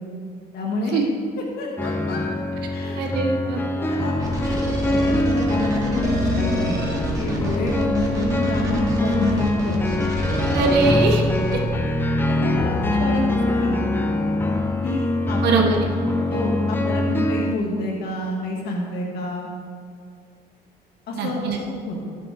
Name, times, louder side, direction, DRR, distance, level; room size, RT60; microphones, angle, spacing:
voice 1, 0.5-1.0 1.6-2.2 2.7-3.1 3.7-4.2 4.4-9.8 11.5-11.6 12.3-13.8 14.8-15.8 16.3-19.5 21.1-22.0, left 1 dB, 70° left, -1 dB, 1.9 m, -28 dB
sound 1, 1.8-17.5, left 2 dB, 10° left, 0.9 m, -23 dB
voice 2, 3.0-3.6 10.5-11.2 11.5-11.6 15.4-15.8 21.1-21.6, right 3 dB, 80° right, 1 dB, 1.3 m, -21 dB
sound 2, 4.2-11.6, right 1 dB, 20° right, 2.6 m, -28 dB
17.0 x 7.6 x 3.5 m, 2.2 s
cardioid pair, 110°, 17 cm